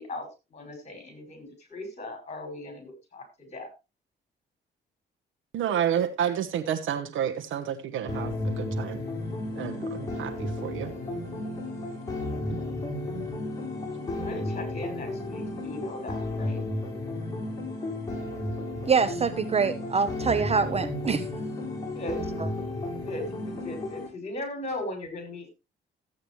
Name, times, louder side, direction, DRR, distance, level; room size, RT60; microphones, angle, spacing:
voice 1, 0.0-3.7 14.1-16.6 21.9-22.2 23.0-25.5, left 1 dB, 35° left, 6.5 m, -38 dB
voice 2, 5.5-9.0 9.5-10.9 12.5-12.6, right 9 dB, 85° right, 1.2 m, -30 dB
sound 1, 8.1-24.1, left 2 dB, 15° left, 7.7 m, -33 dB
voice 3, 18.9-21.3, right 5 dB, 30° right, 0.7 m, -25 dB
14.0 x 8.8 x 3.2 m
cardioid pair, 90°, 20 cm